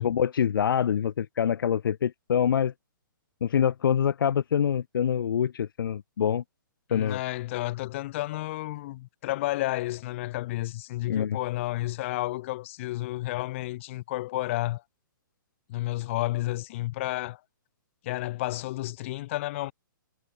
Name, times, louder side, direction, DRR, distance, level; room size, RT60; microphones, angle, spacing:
voice 1, 0.0-2.7 3.4-6.4 6.9-7.2 11.1-11.4, left 8 dB, 80° left, 0.6 m, -25 dB
voice 2, 6.9-14.8 15.7-17.4 18.0-19.7, left 17 dB, 35° left, 1.5 m, -31 dB
hypercardioid pair, 160°, 11 cm